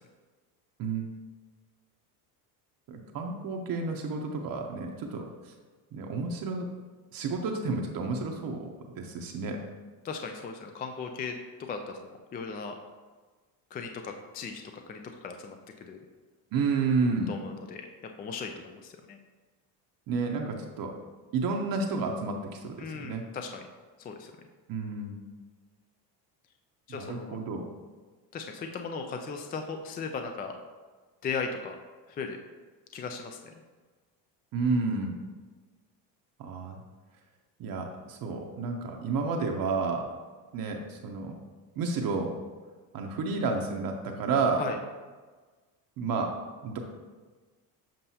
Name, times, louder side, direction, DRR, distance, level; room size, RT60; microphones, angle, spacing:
voice 1, 2.9-5.5 5.9-6.7 7.1-9.6 16.5-17.3 20.1-20.9 21.3-23.2 24.7-25.3 26.9-27.6 34.5-35.1 36.4-36.8 37.6-40.1 40.5-41.3 41.8-42.3 42.9-44.6 46.0-46.3 46.6-46.8, right 4 dB, 50° right, 2 dB, 0.8 m, -31 dB
voice 2, 10.0-12.8 13.7-14.6 14.9-15.6 15.8-16.0 17.3-17.9 18.2-19.2 22.8-23.6 24.0-24.3 26.9-27.4 28.3-30.5 31.2-31.8 32.1-32.4 32.9-33.4 44.6-44.8, left 5 dB, 20° left, 5 dB, 0.3 m, -37 dB
7.6 x 5.3 x 2.8 m, 1.4 s
supercardioid pair, 105°, 46 cm